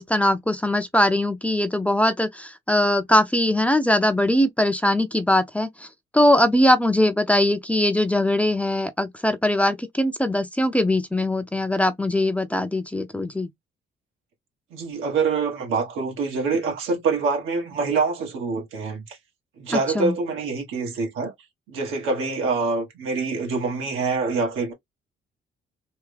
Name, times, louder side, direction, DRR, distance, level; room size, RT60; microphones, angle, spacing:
voice 1, 0.0-5.9 6.1-13.5 19.7-20.1, left 1 dB, 5° left, 0.5 m, -21 dB
voice 2, 14.7-19.2 19.6-21.3 21.7-24.7, right 4 dB, 85° right, 1.6 m, -25 dB
3.5 x 2.2 x 3.3 m
cardioid pair, 90°, 20 cm